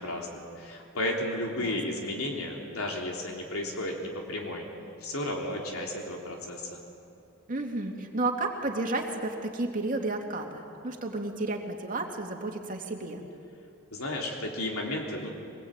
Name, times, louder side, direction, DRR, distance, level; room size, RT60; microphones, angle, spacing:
voice 1, 0.0-4.7 5.0-6.8 13.9-15.3, left 1 dB, 85° left, 0 dB, 3.4 m, -33 dB
voice 2, 7.5-13.2, right 2 dB, 40° right, 1 dB, 2.6 m, -32 dB
24.0 x 20.5 x 9.0 m, 2.6 s
head